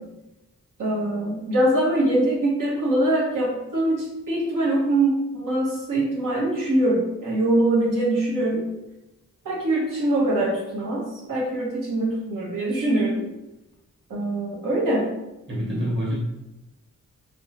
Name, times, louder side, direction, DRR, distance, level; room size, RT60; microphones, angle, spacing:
voice 1, 0.8-8.7 9.4-13.2 14.1-15.1, right 1 dB, 90° right, -4 dB, 1.2 m, -23 dB
voice 2, 15.5-16.1, equal, 40° right, -4 dB, 1.3 m, -26 dB
4.2 x 2.3 x 2.9 m, 0.95 s
wide cardioid pair, 130°, 31 cm